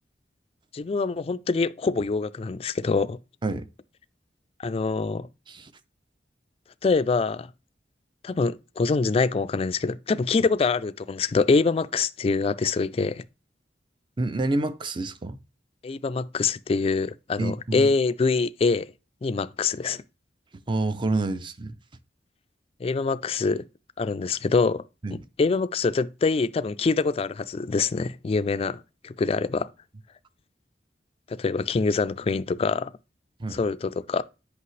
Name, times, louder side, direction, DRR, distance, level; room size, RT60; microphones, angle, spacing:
voice 1, 0.7-3.2 4.6-5.3 6.8-7.5 8.2-13.2 15.8-18.9 19.2-20.0 22.8-23.6 24.0-24.8 25.1-29.7 31.3-32.9 33.5-34.2, left 4 dB, 35° left, 0.3 m, -25 dB
voice 2, 14.2-15.4 17.4-17.9 20.7-21.8 25.0-25.2 33.4-33.6, right 2 dB, 30° right, 0.5 m, -28 dB
8.3 x 5.5 x 3.1 m
head